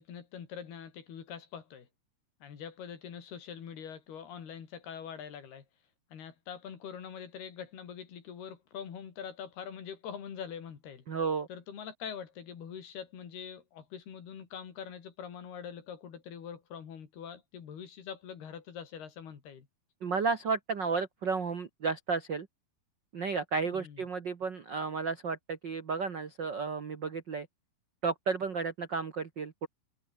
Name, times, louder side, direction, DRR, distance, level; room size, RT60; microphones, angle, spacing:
voice 1, 0.0-1.9 2.4-5.7 6.1-11.1 11.5-19.7 23.6-24.1, left 7 dB, 75° left, 5.3 m, -44 dB
voice 2, 11.1-11.5 20.0-22.5 23.1-27.5 28.0-29.7, right 5 dB, 80° right, 1.0 m, -33 dB
omnidirectional pair, 4.6 m